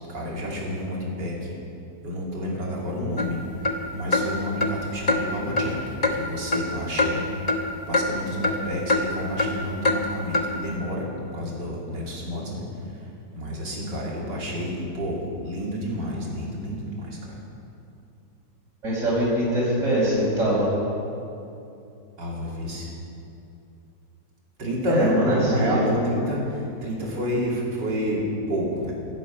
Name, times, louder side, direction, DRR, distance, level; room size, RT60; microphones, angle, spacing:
voice 1, 0.1-1.5 2.0-3.4 3.9-7.2 7.9-12.7 13.4-17.4 22.2-22.9 24.6-28.2 28.5-28.9, equal, 75° right, -4 dB, 3.5 m, -29 dB
sound 1, 3.2-3.3 3.6-3.8 4.1-4.3 4.6-4.7 5.1-5.2 5.6-5.7 6.0-6.2 6.5-6.7 7.0-7.1 7.5-7.6 7.9-8.0 8.4-8.6 8.9-9.0 9.4-9.5 9.8-10.0 10.3-10.5, left 2 dB, 25° left, 0.9 m, -22 dB
voice 2, 18.8-20.7 24.9-25.9, equal, 45° right, -11 dB, 4.9 m, -23 dB
16.5 x 12.5 x 5.8 m, 2.7 s
omnidirectional pair, 1.9 m